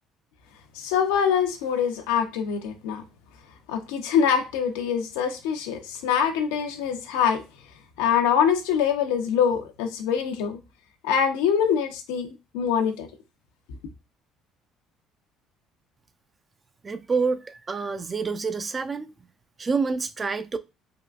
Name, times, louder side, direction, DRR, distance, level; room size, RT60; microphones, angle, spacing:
voice 1, 0.7-3.0 3.7-7.4 8.0-10.6 11.0-13.1, left 7 dB, 85° left, 0.5 m, -24 dB
voice 2, 16.8-19.1 19.6-20.6, right 4 dB, 30° right, 0.3 m, -27 dB
3.5 x 2.2 x 2.3 m
supercardioid pair, 70°, 0 cm